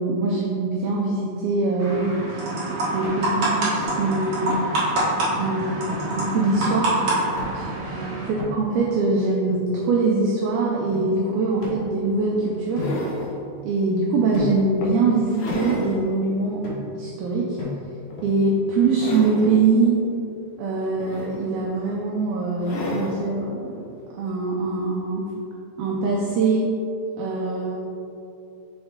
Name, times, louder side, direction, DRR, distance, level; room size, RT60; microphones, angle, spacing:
voice 1, 0.0-2.5 2.9-4.5 5.3-5.8 6.2-7.0 7.5-8.1 8.5-12.9 13.6-16.6 17.0-17.6 18.2-20.0 20.6-23.7 24.1-25.3 25.8-26.7 27.2-27.8, right 3 dB, 85° right, -3 dB, 2.1 m, -23 dB
sound 1, 1.8-8.3, right 2 dB, 70° right, 1.3 m, -26 dB
sound 2, 3.0-3.3 3.8-4.1 4.5-4.9 5.3-5.4 5.9-6.1 6.6-6.9 7.4-7.7 8.4-8.8 9.5-10.2 10.9-11.0 11.6-12.3 12.8-13.8 14.3-14.8 15.5-15.8 16.6-17.1 17.6-18.1, left 3 dB, 60° left, 2.1 m, -35 dB
sound 3, 11.6-11.7 12.3-13.4 14.0-14.2 14.8-16.0 16.5-16.6 18.1-18.5 18.9-19.6 20.8-21.7 22.6-23.2 24.6-24.7, left 1 dB, 90° left, 1.9 m, -31 dB
5.9 x 5.3 x 3.7 m, 2.7 s
omnidirectional pair, 5.1 m